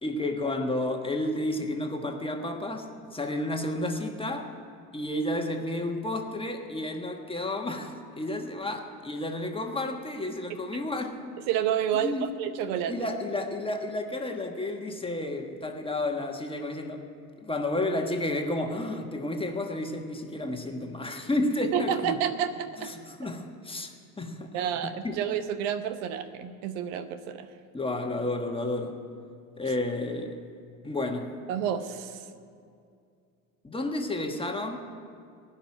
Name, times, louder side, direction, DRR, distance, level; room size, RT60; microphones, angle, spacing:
voice 1, 0.0-4.5 4.9-11.2 12.0-12.3 12.9-17.1 17.4-22.2 22.8-24.5 25.0-25.3 27.7-29.0 29.6-30.4 30.8-31.4 33.6-34.8, left 1 dB, 10° left, 3 dB, 1.5 m, -31 dB
voice 2, 11.5-12.9 21.7-22.9 24.5-27.5 31.5-32.2, right 9 dB, 65° right, 10 dB, 0.9 m, -29 dB
16.0 x 5.7 x 9.9 m, 2.3 s
hypercardioid pair, 80°, 43 cm